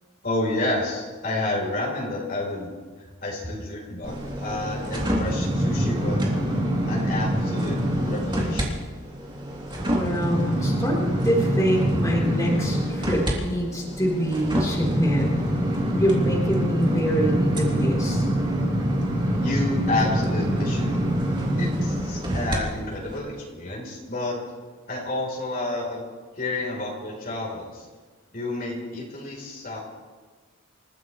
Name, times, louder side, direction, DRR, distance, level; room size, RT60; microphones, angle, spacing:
voice 1, 0.2-2.8 3.2-6.3 6.9-8.8 19.4-21.0 21.6-24.4 24.9-26.0 26.4-27.9 28.3-29.8, left 2 dB, 45° left, -3 dB, 4.2 m, -30 dB
sound 1, 4.0-8.7 9.1-22.6 23.1-23.2, equal, 25° right, 3.3 m, -25 dB
voice 2, 9.9-15.4 15.9-18.2, equal, 15° left, -4 dB, 4.2 m, -25 dB
28.0 x 15.0 x 3.3 m, 1.4 s
head